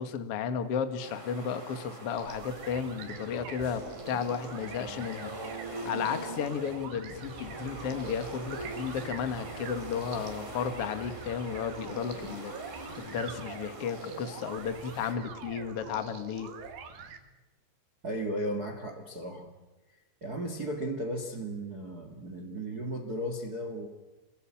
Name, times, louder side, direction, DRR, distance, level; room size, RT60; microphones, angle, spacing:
voice 1, 0.0-5.3 5.8-12.5 13.0-16.5, left 7 dB, 50° left, 9 dB, 1.9 m, -33 dB
sound 1, 1.0-15.1, right 2 dB, 10° right, 2.7 m, -43 dB
sound 2, 2.2-17.2, right 6 dB, 75° right, 4.4 m, -45 dB
sound 3, 7.0-12.4, equal, 25° right, 1.8 m, -49 dB
voice 2, 18.0-19.5 20.2-23.9, right 1 dB, 55° right, 6 dB, 1.0 m, -35 dB
27.0 x 21.0 x 8.9 m, 1.1 s
omnidirectional pair, 5.1 m